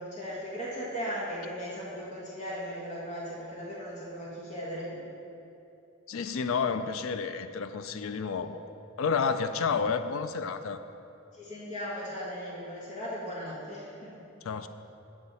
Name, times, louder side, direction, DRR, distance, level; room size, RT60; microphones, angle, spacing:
voice 1, 0.0-5.0 11.3-14.3, equal, 35° left, -6 dB, 1.5 m, -37 dB
voice 2, 6.1-8.6 9.0-10.8 14.4-14.7, left 5 dB, 70° left, 10 dB, 0.4 m, -30 dB
8.9 x 7.7 x 4.1 m, 2.8 s
head